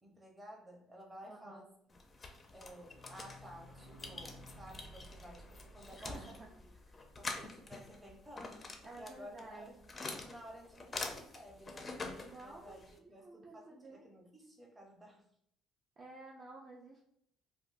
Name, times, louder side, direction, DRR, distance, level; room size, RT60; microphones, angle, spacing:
voice 1, 0.0-1.9 2.5-6.7 7.1-9.8 10.2-11.9 12.4-15.3, equal, 15° right, 0 dB, 0.8 m, -54 dB
voice 2, 1.2-1.7 5.9-7.0 8.8-9.9 12.2-14.0 16.0-17.0, right 2 dB, 40° right, -2 dB, 0.4 m, -53 dB
sound 1, 1.9-13.0, left 3 dB, 25° left, 0.4 m, -47 dB
sound 2, 2.3-7.9 8.2-8.3 8.5-8.6 8.9-9.0, equal, 60° right, 0.9 m, -57 dB
3.5 x 2.2 x 2.5 m, 0.71 s
cardioid pair, 110°, 0 cm